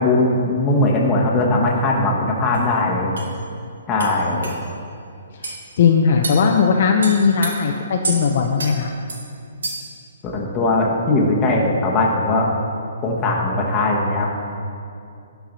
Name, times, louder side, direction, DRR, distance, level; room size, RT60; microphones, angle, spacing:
voice 1, 0.0-3.1 3.9-4.5 10.2-12.5 13.0-14.3, left 2 dB, 20° left, -2 dB, 1.2 m, -19 dB
sound 1, 2.5-2.6 3.2-3.3 4.0-4.1 4.4-4.6 5.4-5.6 6.2-6.4 7.0-7.5 8.0-8.2 8.6-8.7 9.1-9.2 9.6-9.9, right 3 dB, 90° right, 1.9 m, -28 dB
voice 2, 5.4-8.9, left 6 dB, 50° left, 2 dB, 0.6 m, -18 dB
11.5 x 4.7 x 5.3 m, 2.5 s
hypercardioid pair, 160°, 0 cm